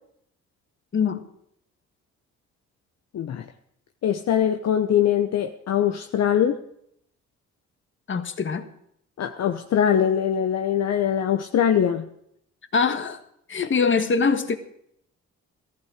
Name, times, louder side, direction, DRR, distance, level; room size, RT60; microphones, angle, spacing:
voice 1, 0.9-1.2 8.1-8.7 12.7-13.2 13.5-14.6, left 5 dB, 40° left, 8 dB, 1.6 m, -23 dB
voice 2, 3.1-3.4 4.0-6.6 9.2-12.1, left 9 dB, 60° left, 6 dB, 1.0 m, -22 dB
14.5 x 14.5 x 5.0 m, 0.70 s
cardioid pair, 90°, 30 cm